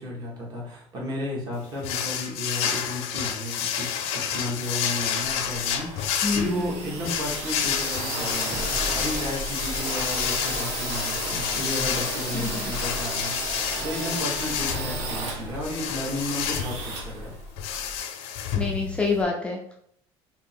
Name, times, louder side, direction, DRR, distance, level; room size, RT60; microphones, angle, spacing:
voice 1, 0.0-17.3, left 1 dB, 40° right, -3 dB, 1.3 m, -33 dB
sound 1, 1.8-19.2, left 8 dB, 70° left, 0.5 m, -30 dB
sound 2, 5.6-18.0, right 2 dB, 70° right, 1.1 m, -34 dB
voice 2, 6.2-7.0 12.3-12.5 18.6-19.7, left 4 dB, 10° left, -2 dB, 0.4 m, -27 dB
Alarm, 8.5-9.4 10.7-18.4, right 2 dB, 15° right, 0.8 m, -47 dB
2.9 x 2.8 x 4.3 m, 0.68 s
cardioid pair, 155°, 11 cm